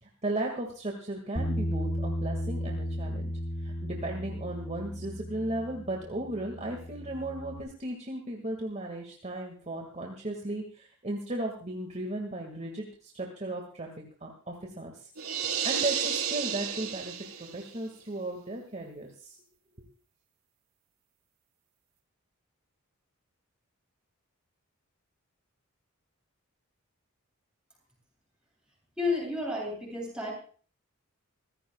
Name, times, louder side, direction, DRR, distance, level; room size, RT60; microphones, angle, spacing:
voice 1, 0.0-3.3 3.6-13.9 14.2-15.1 15.4-19.4, right 1 dB, 30° right, 1 dB, 2.1 m, -36 dB
Bass guitar, 1.4-7.6, equal, 30° left, 3.4 m, -35 dB
sound 1, 15.2-17.7, right 7 dB, 75° right, 4.0 m, -31 dB
voice 2, 29.0-30.3, left 3 dB, 5° right, -3 dB, 7.9 m, -31 dB
25.5 x 15.5 x 2.4 m, 0.42 s
head